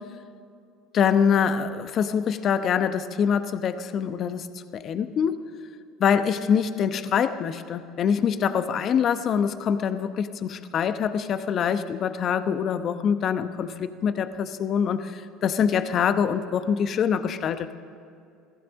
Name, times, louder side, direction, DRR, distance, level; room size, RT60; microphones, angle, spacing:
voice 1, 0.9-4.5 4.7-5.4 6.0-17.8, left 7 dB, 50° left, 11 dB, 0.9 m, -24 dB
15.0 x 15.0 x 6.3 m, 2.4 s
hypercardioid pair, 75°, 0 cm